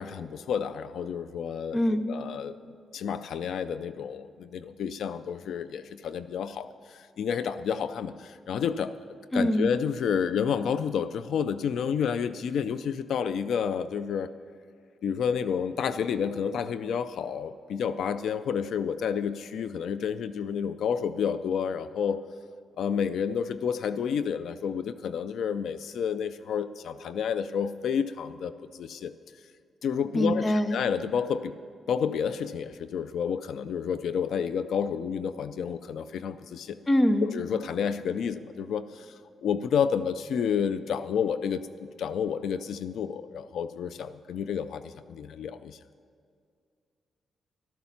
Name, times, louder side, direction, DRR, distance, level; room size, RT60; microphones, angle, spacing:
voice 1, 0.0-1.8 2.1-2.6 2.9-8.9 9.3-14.3 15.0-22.2 22.8-29.1 29.8-31.5 31.9-36.8 37.2-39.1 39.4-45.8, left 7 dB, 70° left, 13 dB, 0.4 m, -30 dB
voice 2, 1.7-2.1 9.3-9.7 30.1-30.8 36.9-37.3, equal, 15° left, 9 dB, 0.6 m, -23 dB
14.0 x 13.0 x 5.8 m, 2.3 s
wide cardioid pair, 180°, 0 cm